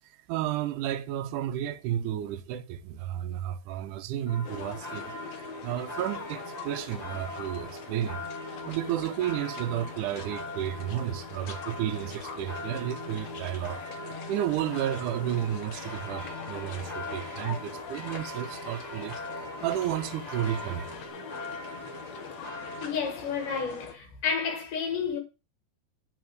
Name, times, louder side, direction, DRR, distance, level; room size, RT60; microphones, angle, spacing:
voice 1, 0.3-5.1 5.6-8.2 8.7-13.8 14.3-19.2 19.6-20.9, right 11 dB, 80° right, 2.2 m, -32 dB
sound 1, 4.3-22.8, left 1 dB, 20° left, 1.1 m, -41 dB
sound 2, 4.4-23.9, left 6 dB, 60° left, 2.2 m, -44 dB
sound 3, 15.7-21.1, left 2 dB, 45° left, 2.7 m, -46 dB
voice 2, 22.4-25.2, left 6 dB, 85° left, 3.6 m, -31 dB
9.5 x 4.2 x 6.4 m
omnidirectional pair, 3.6 m